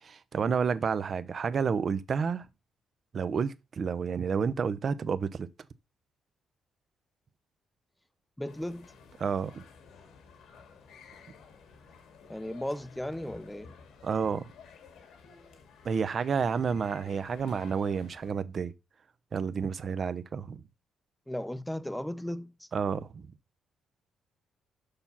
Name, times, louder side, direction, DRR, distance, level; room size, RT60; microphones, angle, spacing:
voice 1, 0.0-2.5 3.1-5.5 9.2-9.6 14.0-14.5 15.8-18.7 19.3-20.6 22.7-23.2, right 6 dB, 50° right, 0.8 m, -30 dB
voice 2, 8.4-8.9 12.3-13.7 21.3-22.7, left 1 dB, 5° left, 0.7 m, -36 dB
sound 1, 8.5-18.3, left 5 dB, 80° left, 2.0 m, -53 dB
6.8 x 6.0 x 5.6 m
cardioid pair, 90°, 0 cm